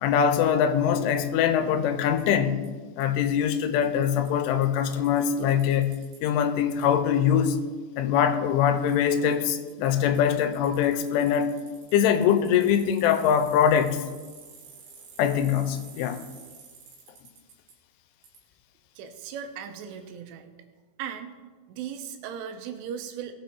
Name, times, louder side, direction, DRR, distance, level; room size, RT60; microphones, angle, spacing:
voice 1, 0.0-2.6 3.0-6.0 6.2-7.6 8.0-11.5 11.9-14.0 15.2-16.2, left 8 dB, 85° left, 9 dB, 3.1 m, -23 dB
Bicycle, 1.1-1.2 2.2-2.3 2.6-2.7 3.0-3.1 3.3-3.4 3.6-6.4 6.8-6.9 8.9-9.0 9.3-17.7 18.2-18.4, right 5 dB, 65° right, 3.7 m, -51 dB
voice 2, 19.0-20.5 21.0-21.3 21.7-23.3, right 8 dB, 85° right, 7 dB, 3.3 m, -37 dB
18.0 x 6.2 x 4.5 m, 1.4 s
omnidirectional pair, 5.6 m